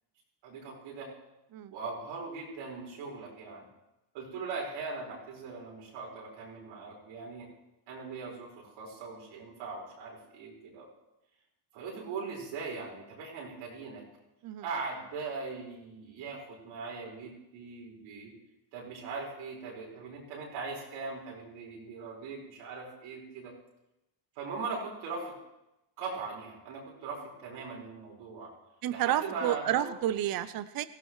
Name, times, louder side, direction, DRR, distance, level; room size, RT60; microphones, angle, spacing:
voice 1, 0.4-1.1 1.7-3.6 4.1-7.5 7.9-10.9 11.7-14.0 14.6-18.3 18.7-23.5 24.4-25.3 26.0-28.5 28.9-29.9, right 4 dB, 90° right, -3 dB, 5.1 m, -40 dB
voice 2, 28.8-30.8, right 12 dB, 50° right, 13 dB, 0.7 m, -30 dB
18.0 x 15.5 x 3.2 m, 0.94 s
cardioid pair, 95°, 46 cm